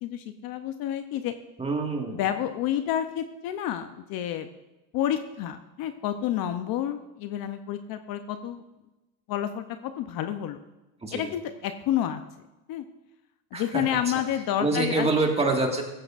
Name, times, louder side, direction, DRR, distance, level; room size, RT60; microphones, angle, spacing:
voice 1, 0.0-1.3 2.1-4.5 4.9-8.6 9.3-10.6 11.1-12.2 12.7-12.8 13.5-15.1, left 11 dB, 45° left, 9 dB, 0.7 m, -29 dB
voice 2, 1.6-2.2 11.0-11.2 13.5-13.8 14.6-15.8, right 3 dB, 10° right, 2 dB, 1.8 m, -26 dB
16.0 x 13.5 x 2.5 m, 1.0 s
supercardioid pair, 120°, 49 cm